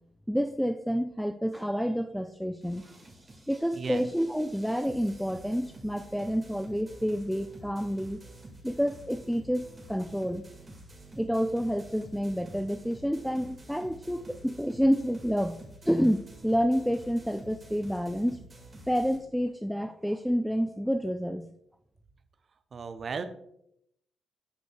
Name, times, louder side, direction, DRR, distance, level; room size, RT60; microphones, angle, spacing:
voice 1, 0.3-2.8 3.5-8.2 8.6-10.4 11.2-15.6 15.8-18.4 18.9-21.5, equal, ahead, 9 dB, 0.4 m, -29 dB
sound 1, 2.6-19.2, right 1 dB, 20° right, 1.9 m, -49 dB
voice 2, 22.7-23.2, right 5 dB, 40° right, 9 dB, 0.7 m, -35 dB
12.0 x 5.1 x 2.3 m, 0.74 s
figure-of-eight pair, 40°, 0 cm